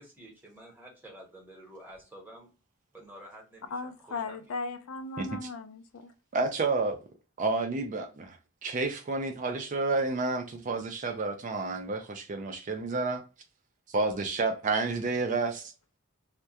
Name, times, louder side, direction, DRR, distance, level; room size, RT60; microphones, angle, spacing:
voice 1, 0.0-2.5 2.9-4.4, right 1 dB, 10° right, 0.9 m, -50 dB
voice 2, 3.7-6.1, left 3 dB, 80° left, 0.4 m, -37 dB
voice 3, 6.3-7.0 7.4-13.2 13.9-15.7, right 3 dB, 35° right, 0.4 m, -30 dB
2.3 x 2.1 x 2.7 m
head